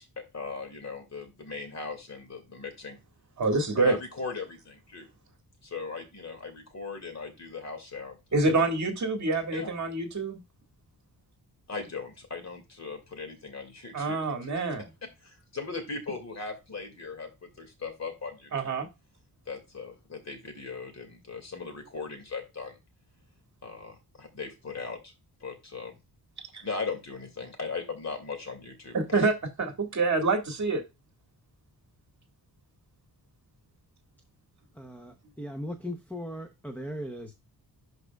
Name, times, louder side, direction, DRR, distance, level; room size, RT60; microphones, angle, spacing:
voice 1, 0.0-3.0 3.8-5.1 5.6-8.2 9.5-9.7 11.7-14.3 14.5-14.6 15.2-18.7 19.5-22.8 23.6-25.1 25.4-25.9 26.6-29.3, left 4 dB, 45° left, 2.3 m, -38 dB
voice 2, 3.4-4.0 8.3-10.4 13.9-14.9 18.5-18.9 26.5-26.6 28.9-30.8, right 3 dB, 45° right, 1.8 m, -26 dB
voice 3, 34.8-35.1 35.4-37.3, equal, 5° left, 0.7 m, -38 dB
11.5 x 4.7 x 2.3 m
wide cardioid pair, 165°, 38 cm